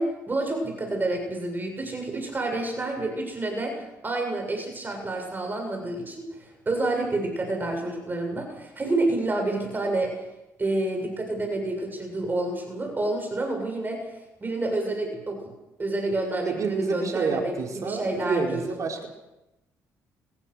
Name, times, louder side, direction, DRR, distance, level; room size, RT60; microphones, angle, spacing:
voice 1, 0.0-10.1 10.6-14.1 14.4-15.4 15.8-17.5 17.8-18.6, right 2 dB, 25° right, 3 dB, 7.4 m, -28 dB
voice 2, 16.4-19.1, right 5 dB, 55° right, 1 dB, 4.8 m, -29 dB
24.5 x 20.5 x 6.6 m, 0.94 s
supercardioid pair, 70°, 7 cm